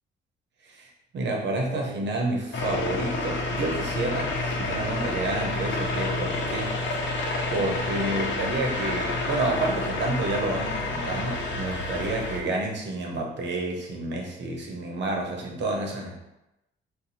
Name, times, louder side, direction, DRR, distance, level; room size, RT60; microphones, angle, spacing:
voice 1, 0.7-6.7 7.5-16.1, right 2 dB, 65° right, 0 dB, 0.9 m, -29 dB
sound 1, 2.5-12.4, left 2 dB, 70° left, 0.6 m, -29 dB
2.7 x 2.3 x 4.1 m, 0.92 s
cardioid pair, 90°, 20 cm